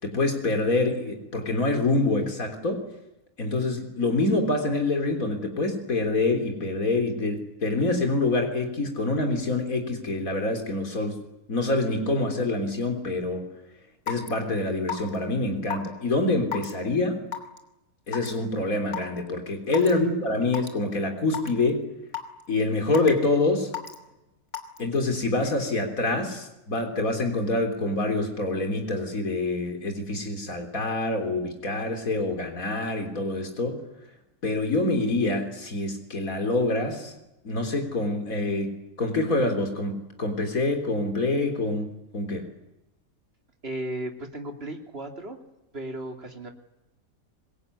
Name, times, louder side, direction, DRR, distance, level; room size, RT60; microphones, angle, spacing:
voice 1, 0.0-2.8 3.4-11.2 11.5-13.5 14.1-17.2 18.1-21.9 22.5-23.7 24.8-33.8 34.4-37.1 37.4-41.9 42.1-42.5, left 2 dB, 70° left, 4 dB, 4.0 m, -26 dB
Raindrop / Water tap faucet / Drip, 14.1-14.3 14.9-15.2 15.7-15.9 16.5-16.7 17.3-17.6 18.1-18.3 18.9-19.0 19.7-19.9 20.5-20.7 21.3-21.5 22.1-22.4 22.9-23.3 23.7-24.0 24.5-24.8, left 9 dB, 55° left, 3.4 m, -31 dB
voice 2, 43.6-45.4 45.7-46.5, right 1 dB, 45° right, 4 dB, 3.2 m, -35 dB
25.5 x 22.0 x 9.8 m, 0.92 s
omnidirectional pair, 1.5 m